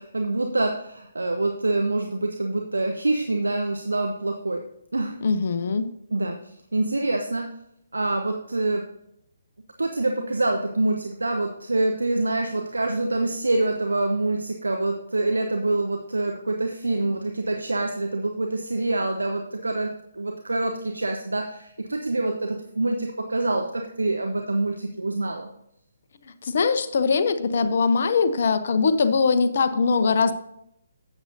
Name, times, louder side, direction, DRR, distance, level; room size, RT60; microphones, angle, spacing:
voice 1, 0.0-4.6 4.9-5.2 6.1-6.4 6.7-7.5 7.9-8.8 9.8-25.5, right 2 dB, 70° right, 3 dB, 1.0 m, -26 dB
voice 2, 5.2-5.9 26.4-30.3, left 4 dB, 45° left, 10 dB, 0.8 m, -21 dB
12.0 x 8.5 x 2.7 m, 0.76 s
figure-of-eight pair, 135°, 0 cm